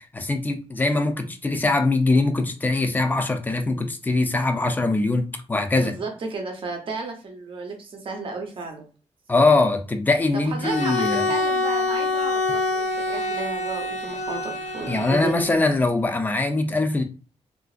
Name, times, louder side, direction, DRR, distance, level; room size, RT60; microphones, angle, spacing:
voice 1, 0.1-6.0 9.3-11.3 14.9-17.0, left 2 dB, 15° left, 0.4 m, -22 dB
voice 2, 5.7-8.9 10.3-15.5, right 3 dB, 50° right, 0.7 m, -33 dB
Bowed string instrument, 10.6-15.6, left 2 dB, 85° left, 0.7 m, -26 dB
3.7 x 2.4 x 2.4 m
wide cardioid pair, 180°, 12 cm